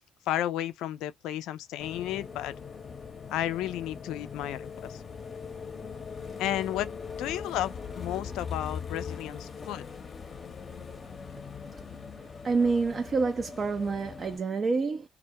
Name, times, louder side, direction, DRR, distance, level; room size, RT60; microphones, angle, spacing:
voice 1, 0.3-2.5 3.3-5.0 6.4-9.8, left 12 dB, 85° left, 0.3 m, -33 dB
sound 1, 1.8-14.4, left 6 dB, 40° left, 0.7 m, -41 dB
voice 2, 12.4-15.1, right 4 dB, 45° right, 0.4 m, -27 dB
2.2 x 2.1 x 2.7 m
supercardioid pair, 75°, 0 cm